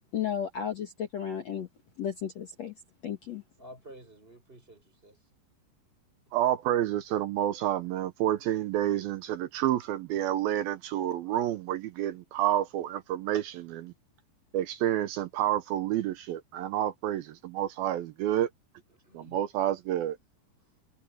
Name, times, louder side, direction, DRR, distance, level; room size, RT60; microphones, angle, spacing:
voice 1, 0.1-1.7 2.0-2.7 3.0-3.4, left 9 dB, 50° left, 2.4 m, -33 dB
voice 2, 3.6-5.3 18.9-19.4 20.6-20.7, right 1 dB, 15° right, 5.8 m, -51 dB
voice 3, 6.3-13.9 14.5-18.5 19.1-20.2, right 12 dB, 75° right, 2.4 m, -29 dB
omnidirectional pair, 4.7 m